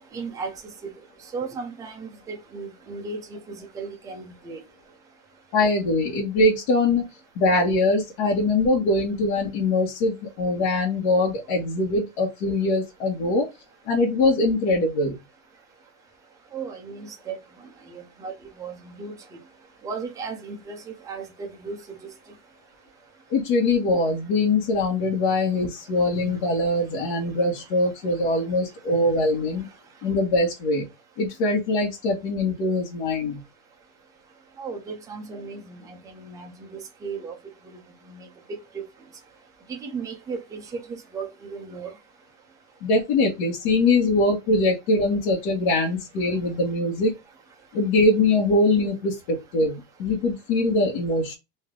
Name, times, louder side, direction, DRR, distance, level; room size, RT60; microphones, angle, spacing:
voice 1, 0.1-0.5 1.3-4.6 16.5-17.4 17.9-18.3 18.6-19.1 19.8-21.8 34.6-37.4 37.7-37.8 38.1-38.8 39.7-40.8 41.1-41.9, right 4 dB, 10° right, 0.5 m, -35 dB
voice 2, 5.5-7.1 7.3-13.5 13.9-15.2 23.3-29.7 30.0-30.9 31.2-33.4 42.8-47.1 47.7-51.4, left 2 dB, 60° left, 1.4 m, -22 dB
3.3 x 2.7 x 3.7 m
cardioid pair, 170°, 38 cm